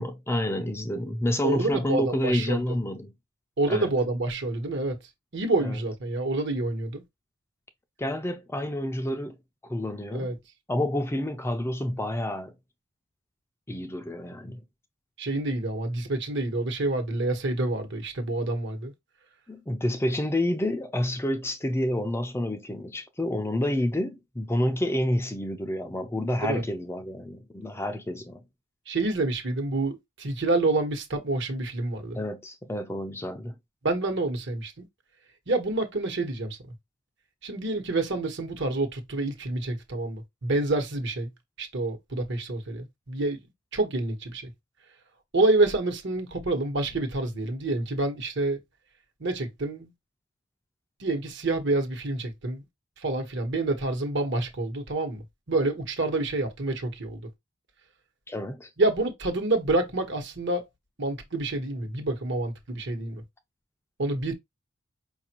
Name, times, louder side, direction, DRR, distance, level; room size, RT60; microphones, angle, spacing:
voice 1, 0.0-3.1 3.6-3.9 5.6-5.8 8.0-9.4 9.6-10.3 10.7-12.5 13.7-14.6 19.5-28.4 32.1-33.6 58.3-58.7, left 1 dB, 10° left, 0.4 m, -29 dB
voice 2, 1.4-2.6 3.6-5.0 5.3-7.0 10.1-10.4 15.2-18.9 26.4-26.6 28.9-32.2 33.8-34.8 35.5-36.6 37.4-41.3 41.6-43.4 43.7-44.5 45.3-48.6 49.2-49.9 51.0-52.6 53.0-57.2 58.8-60.6 61.0-63.2 64.0-64.3, right 2 dB, 60° right, 1.1 m, -28 dB
5.1 x 2.5 x 2.9 m
head